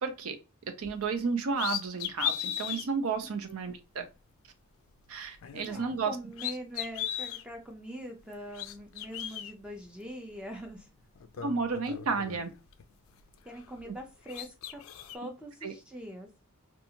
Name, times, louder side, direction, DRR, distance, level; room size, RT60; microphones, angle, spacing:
voice 1, 0.0-0.4 0.8-4.0 5.1-6.1 11.4-12.5 13.9-14.0 15.6-15.7, right 4 dB, 80° right, 8 dB, 0.5 m, -32 dB
sound 1, 0.8-1.0 1.5-2.9 3.5-3.6 5.3-6.1 6.3-7.4 8.3-9.5 10.6-10.7 11.1-12.8 13.2-14.0 14.3-15.2, left 10 dB, 70° left, 0.3 m, -37 dB
voice 2, 5.7-10.9 13.5-14.8 15.1-16.3, equal, 5° right, 2 dB, 0.4 m, -43 dB
2.6 x 2.4 x 2.7 m, 0.29 s
head